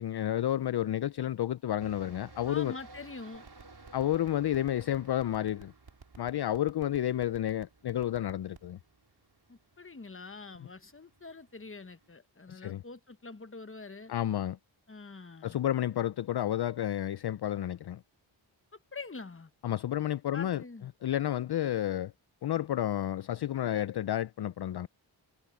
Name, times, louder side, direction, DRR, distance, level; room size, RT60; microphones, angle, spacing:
voice 1, 0.0-2.7 3.9-5.7 6.2-8.8 12.5-12.8 14.1-14.6 15.4-18.0 19.6-20.6 21.0-22.1 22.4-24.9, left 12 dB, 55° left, 0.5 m, -31 dB
sound 1, 1.8-12.1, right 3 dB, 50° right, 4.2 m, -57 dB
voice 2, 2.5-3.5 9.5-14.1 14.9-15.6 18.9-19.5 20.3-20.9, left 4 dB, 25° left, 1.2 m, -45 dB
sound 2, 3.3-8.7, right 5 dB, 70° right, 4.5 m, -50 dB
wide cardioid pair, 55°, 48 cm